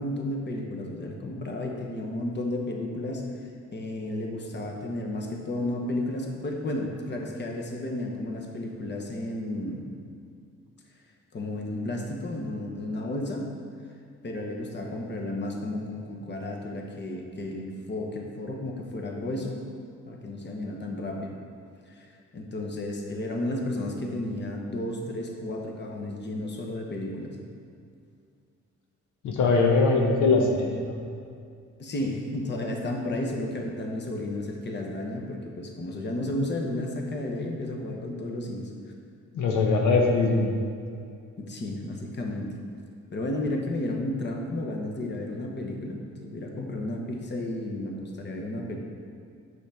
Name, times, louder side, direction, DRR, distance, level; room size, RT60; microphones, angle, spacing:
voice 1, 0.0-3.3 3.7-9.8 11.3-13.5 14.2-19.6 20.0-21.3 21.9-27.4 31.8-38.7 41.4-42.5 43.1-48.8, left 1 dB, 35° left, 1 dB, 1.1 m, -32 dB
voice 2, 29.2-31.0 39.3-40.5, left 3 dB, 80° left, 0 dB, 0.9 m, -22 dB
8.1 x 6.3 x 3.5 m, 2.3 s
cardioid pair, 90°, 30 cm